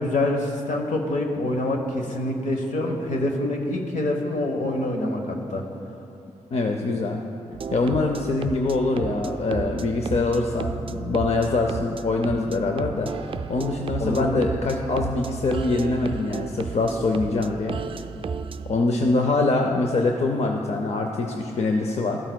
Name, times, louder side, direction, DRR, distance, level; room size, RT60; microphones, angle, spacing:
voice 1, 0.0-5.6 14.0-14.4, left 1 dB, 75° left, 2 dB, 1.1 m, -26 dB
voice 2, 6.5-7.2 7.7-17.8 18.7-22.2, left 3 dB, 55° left, 3 dB, 0.6 m, -24 dB
sound 1, 7.5-18.8, right 5 dB, 45° right, 0.3 m, -33 dB
13.0 x 8.8 x 2.3 m, 2.7 s
cardioid pair, 60°, 13 cm